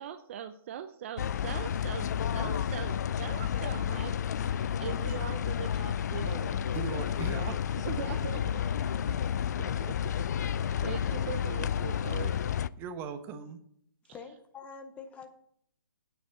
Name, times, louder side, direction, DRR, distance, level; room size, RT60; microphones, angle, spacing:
voice 1, 0.0-6.8 7.8-8.8 9.6-10.0 10.8-12.4, right 9 dB, 35° right, 0.5 m, -41 dB
sound 1, 1.2-12.7, left 9 dB, 50° left, 0.4 m, -31 dB
voice 2, 6.7-7.8 9.1-9.2 12.8-13.6, right 6 dB, 20° right, 1.0 m, -39 dB
voice 3, 14.0-15.3, left 5 dB, 10° left, 0.7 m, -46 dB
8.8 x 5.3 x 7.7 m
hypercardioid pair, 150°, 12 cm